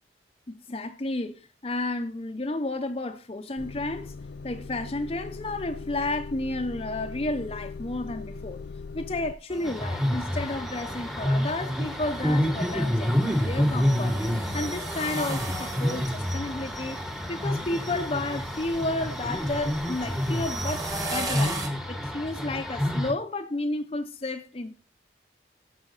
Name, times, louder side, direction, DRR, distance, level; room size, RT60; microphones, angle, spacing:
voice 1, 0.5-4.1 4.4-8.6 8.9-17.0 17.3-21.6 21.9-24.8, left 2 dB, 30° left, 0.7 m, -32 dB
Motor vehicle (road) / Engine starting / Idling, 3.6-9.4, left 4 dB, 75° left, 0.6 m, -40 dB
sound 1, 9.5-21.7, right 2 dB, 20° right, 1.8 m, -38 dB
sound 2, 9.6-23.1, left 1 dB, ahead, 1.2 m, -28 dB
14.5 x 5.9 x 4.0 m
head